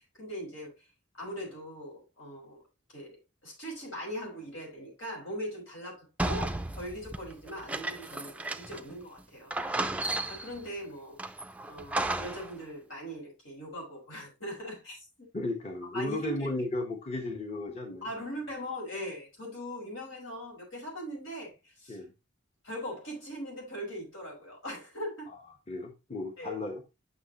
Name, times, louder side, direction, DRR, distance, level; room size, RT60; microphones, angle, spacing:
voice 1, 0.2-0.7 1.2-2.6 2.9-9.5 10.3-11.2 11.7-15.3 15.9-16.4 18.0-21.5 21.8-22.0 22.6-25.3 26.4-26.5, equal, 80° left, 5.7 m, -40 dB
sound 1, 6.2-8.9 9.2-9.3 9.5-10.6 11.2-12.5, right 2 dB, 5° right, 0.4 m, -34 dB
voice 2, 15.3-18.1 21.9-22.1 25.7-26.8, left 2 dB, 30° left, 1.2 m, -34 dB
9.4 x 6.0 x 2.9 m
head